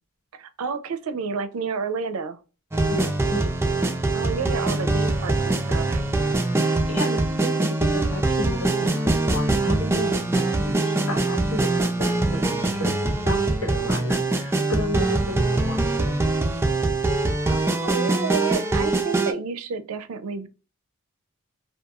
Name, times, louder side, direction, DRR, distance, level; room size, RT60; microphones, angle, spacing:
voice 1, 0.3-2.4 4.1-6.0 17.5-20.5, right 5 dB, 80° right, 0.4 m, -30 dB
sound 1, 2.7-19.3, right 2 dB, 10° right, 0.4 m, -23 dB
voice 2, 2.9-3.5 6.5-16.2, left 1 dB, 80° left, 1.2 m, -32 dB
2.9 x 2.3 x 2.3 m
head